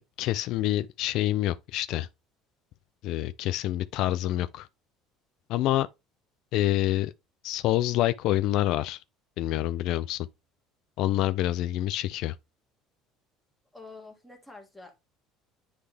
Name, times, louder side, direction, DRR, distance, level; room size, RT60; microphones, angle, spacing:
voice 1, 0.0-2.1 3.0-4.7 5.5-5.9 6.5-7.1 7.4-9.0 9.4-10.3 11.0-12.3, left 14 dB, 60° left, 0.3 m, -27 dB
voice 2, 13.7-15.0, left 3 dB, ahead, 1.8 m, -47 dB
9.7 x 3.4 x 3.3 m
cardioid pair, 145°, 0 cm